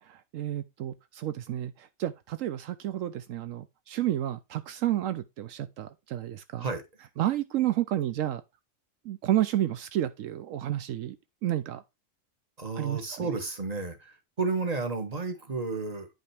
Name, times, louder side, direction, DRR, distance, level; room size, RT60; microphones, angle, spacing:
voice 1, 0.3-6.7 7.2-8.4 9.0-11.2 11.4-11.8 12.8-13.3, right 13 dB, 80° right, 1.0 m, -30 dB
voice 2, 12.6-16.1, right 4 dB, 30° right, 1.5 m, -32 dB
9.5 x 5.4 x 3.3 m
omnidirectional pair, 1.3 m